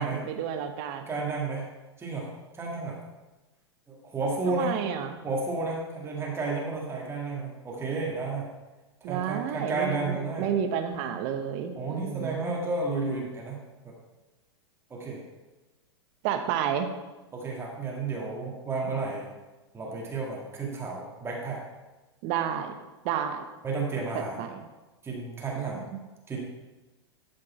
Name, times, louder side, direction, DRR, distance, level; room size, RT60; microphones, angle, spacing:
voice 1, 0.0-1.1 4.5-5.2 9.0-12.5 16.2-16.9 18.8-18.9 22.2-22.7 23.0-23.4 24.1-24.5 25.5-26.0, right 8 dB, 45° right, 7 dB, 1.0 m, -31 dB
voice 2, 1.1-1.7 2.0-3.0 3.9-4.7 5.2-8.5 9.0-10.5 11.8-13.9 14.9-15.2 17.3-19.3 19.7-21.6 23.6-24.4 25.0-25.8 26.3-26.4, right 3 dB, 15° right, -3 dB, 2.1 m, -32 dB
12.5 x 5.2 x 4.3 m, 1.1 s
figure-of-eight pair, 100°, 15 cm